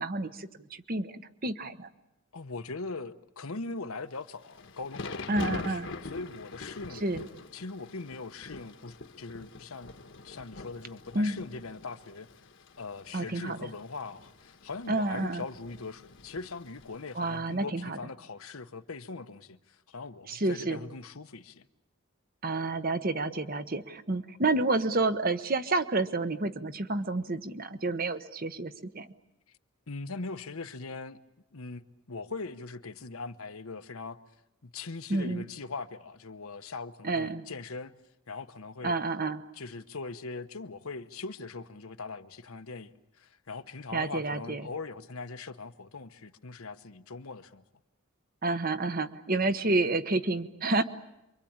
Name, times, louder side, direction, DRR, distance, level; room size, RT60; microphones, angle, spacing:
voice 1, 0.0-1.9 5.3-5.9 7.0-7.2 11.1-11.4 13.1-13.7 14.9-15.4 17.1-18.0 20.3-20.8 22.4-29.1 35.1-35.4 37.0-37.4 38.8-39.4 43.9-44.6 48.4-50.8, right 2 dB, 40° right, 1.1 m, -29 dB
voice 2, 2.3-7.0 7.5-9.9 10.2-12.3 12.8-21.6 29.9-31.2 31.5-31.8 32.1-34.2 34.6-37.9 38.3-38.9 39.6-47.6, left 3 dB, 80° left, 1.1 m, -41 dB
Thunder / Rain, 4.2-17.3, left 3 dB, 60° left, 1.3 m, -44 dB
28.0 x 24.0 x 8.8 m
head